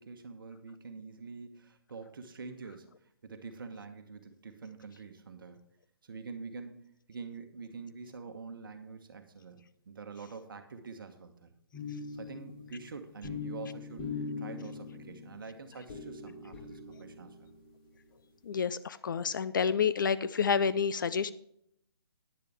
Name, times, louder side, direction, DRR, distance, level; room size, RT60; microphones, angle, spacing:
voice 1, 0.0-5.6 6.0-11.5 11.9-17.5, right 4 dB, 55° right, 6 dB, 1.2 m, -46 dB
sound 1, 11.7-17.8, left 4 dB, 30° left, 3.0 m, -42 dB
voice 2, 18.4-21.3, left 6 dB, 50° left, 14 dB, 0.5 m, -29 dB
10.5 x 10.0 x 3.4 m, 0.72 s
figure-of-eight pair, 140°, 13 cm